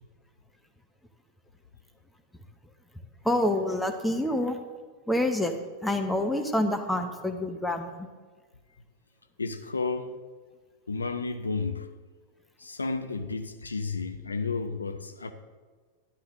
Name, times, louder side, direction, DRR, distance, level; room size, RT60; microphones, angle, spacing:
voice 1, 3.2-4.6 5.1-5.5 5.8-8.1, left 1 dB, 5° left, 1.0 m, -27 dB
voice 2, 9.4-10.1 10.9-11.9 12.6-15.3, left 4 dB, 75° left, 0.6 m, -32 dB
12.0 x 11.5 x 3.7 m
figure-of-eight pair, 90°, 0 cm